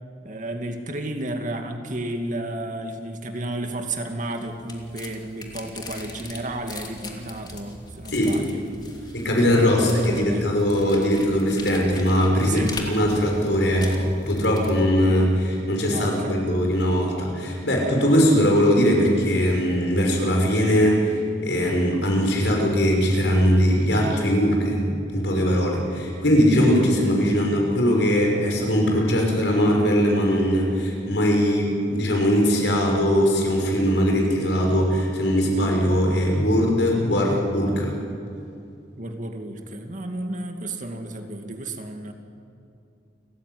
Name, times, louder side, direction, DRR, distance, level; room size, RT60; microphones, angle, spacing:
voice 1, 0.2-8.6 9.0-9.2 9.7-10.5 12.4-12.7 15.9-16.5 39.0-42.1, right 1 dB, 45° right, 5 dB, 2.3 m, -32 dB
sound 1, 4.1-14.9, left 2 dB, 25° left, 2.9 m, -41 dB
voice 2, 9.1-24.8 25.1-37.9, equal, 80° left, 0 dB, 6.0 m, -20 dB
29.5 x 15.0 x 9.6 m, 2.5 s
head